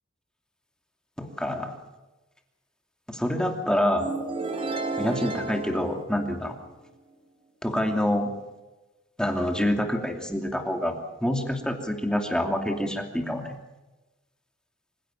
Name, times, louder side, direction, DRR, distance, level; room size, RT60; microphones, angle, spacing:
voice 1, 1.2-1.7 3.1-4.1 5.0-6.5 7.6-8.3 9.2-13.6, left 1 dB, 5° left, 4 dB, 2.7 m, -27 dB
sound 1, 4.0-6.8, right 3 dB, 30° right, 3.8 m, -32 dB
26.0 x 16.0 x 7.5 m, 1.1 s
head